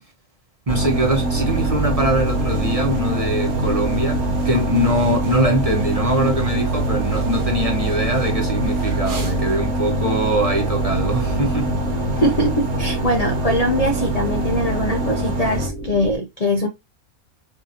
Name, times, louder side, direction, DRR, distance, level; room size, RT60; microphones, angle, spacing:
voice 1, 0.7-11.8, right 1 dB, 30° right, 0.8 m, -22 dB
sound 1, 0.7-15.7, right 1 dB, 80° right, 1.5 m, -23 dB
sound 2, 1.3-16.2, right 2 dB, 75° left, 2.4 m, -30 dB
sound 3, 2.2-9.6, equal, 65° right, 1.6 m, -39 dB
voice 2, 12.2-16.7, equal, 45° left, 0.5 m, -22 dB
4.7 x 2.7 x 2.7 m
omnidirectional pair, 1.5 m